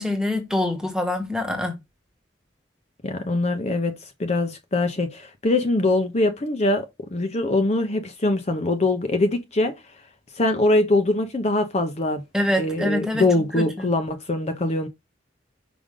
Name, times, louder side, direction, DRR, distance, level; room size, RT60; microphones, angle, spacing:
voice 1, 0.0-1.8 12.3-13.3 13.5-13.9, left 1 dB, 5° right, 1.3 m, -25 dB
voice 2, 3.0-3.9 4.2-6.9 7.1-9.7 10.4-12.2 12.6-14.9, left 2 dB, 35° left, 0.7 m, -22 dB
5.1 x 5.1 x 3.7 m
head